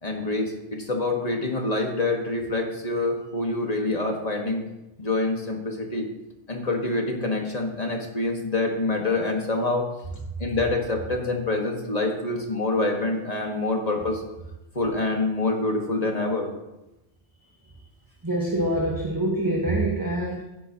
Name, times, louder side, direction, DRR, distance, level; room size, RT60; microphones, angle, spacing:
voice 1, 0.0-4.6 5.0-6.0 6.5-9.9 10.4-14.2 14.7-16.5, left 2 dB, 35° left, 2 dB, 1.6 m, -26 dB
voice 2, 18.2-20.4, right 1 dB, 20° right, -2 dB, 1.2 m, -25 dB
16.0 x 8.3 x 2.9 m, 0.94 s
omnidirectional pair, 1.1 m